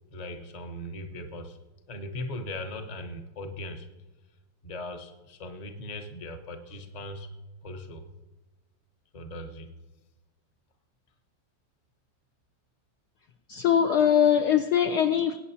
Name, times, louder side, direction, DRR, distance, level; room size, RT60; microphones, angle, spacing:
voice 1, 0.1-1.6 1.9-3.9 4.6-7.3 7.6-8.0 9.1-9.7, left 1 dB, 35° left, 0.7 m, -39 dB
voice 2, 13.5-15.4, left 8 dB, 75° left, 0.9 m, -22 dB
21.0 x 9.1 x 2.8 m
omnidirectional pair, 2.1 m